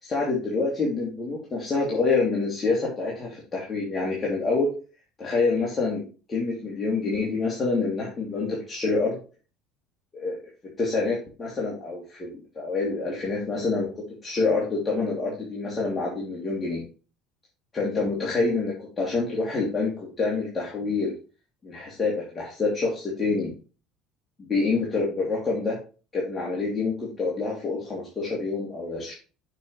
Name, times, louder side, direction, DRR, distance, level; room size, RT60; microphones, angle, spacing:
voice 1, 0.0-4.7 5.2-6.0 6.3-9.1 10.1-10.4 10.8-12.3 12.5-13.9 14.2-16.8 17.7-21.1 21.6-23.5 24.4-25.8 26.1-29.2, left 3 dB, 25° left, -4 dB, 2.6 m, -27 dB
6.9 x 6.7 x 3.1 m, 0.35 s
supercardioid pair, 95°, 0 cm